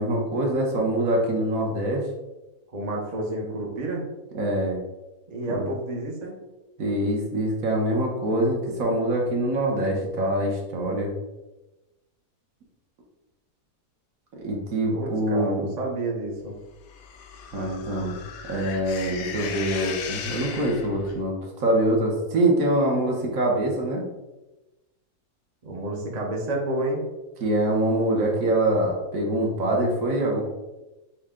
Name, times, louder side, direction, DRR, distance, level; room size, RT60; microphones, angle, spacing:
voice 1, 0.0-2.1 4.3-4.8 5.5-5.7 6.8-11.1 14.3-15.6 17.5-18.2 18.4-24.0 27.4-30.4, right 1 dB, 60° right, -1 dB, 1.3 m, -24 dB
voice 2, 2.7-4.0 5.3-6.4 14.9-16.6 25.6-27.0, right 1 dB, 35° right, -1 dB, 0.6 m, -30 dB
sound 1, 16.9-21.2, left 7 dB, 70° left, 0.6 m, -36 dB
6.3 x 2.2 x 3.6 m, 1.0 s
omnidirectional pair, 1.7 m